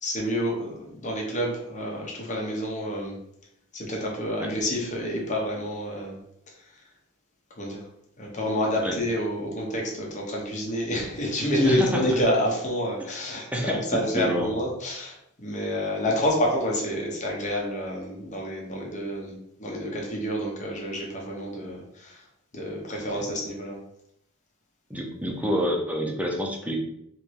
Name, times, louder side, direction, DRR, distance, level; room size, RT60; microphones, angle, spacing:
voice 1, 0.0-3.2 3.7-6.2 7.6-7.8 8.2-22.2 22.5-23.8, equal, 35° left, -2 dB, 1.1 m, -28 dB
voice 2, 11.6-12.0 13.1-13.2 13.5-14.5 22.9-23.2 24.9-26.8, equal, 5° right, 0 dB, 0.7 m, -28 dB
3.5 x 3.1 x 4.6 m, 0.73 s
head